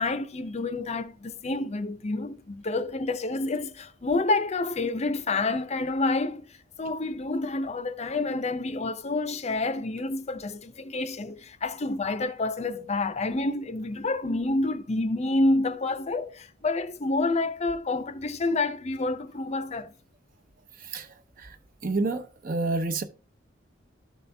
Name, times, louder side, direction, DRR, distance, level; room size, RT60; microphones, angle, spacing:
voice 1, 0.0-6.5 6.8-19.9, left 2 dB, 35° left, 0.6 m, -28 dB
voice 2, 21.8-23.0, right 3 dB, 50° right, 0.8 m, -29 dB
12.5 x 4.2 x 3.4 m
head